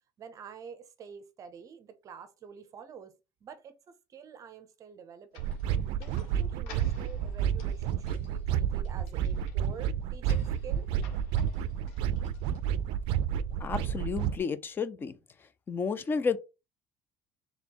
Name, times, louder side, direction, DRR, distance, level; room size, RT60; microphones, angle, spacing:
voice 1, 0.2-3.1 3.4-5.6 5.9-10.9, right 7 dB, 35° right, 0.7 m, -48 dB
sound 1, 5.3-13.0, left 5 dB, 80° left, 1.3 m, -55 dB
sound 2, 5.4-14.4, right 9 dB, 70° right, 0.4 m, -30 dB
voice 2, 13.6-15.2 15.7-16.4, left 5 dB, 20° left, 0.4 m, -31 dB
4.1 x 3.4 x 2.9 m
cardioid pair, 150°, 10 cm